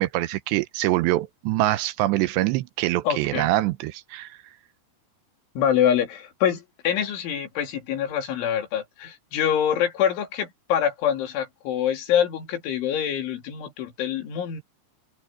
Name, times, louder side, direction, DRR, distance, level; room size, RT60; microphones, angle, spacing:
voice 1, 0.0-4.4, right 16 dB, 80° right, 2.8 m, -24 dB
voice 2, 3.1-3.5 5.6-14.6, left 9 dB, 90° left, 5.3 m, -25 dB
open air
omnidirectional pair, 5.3 m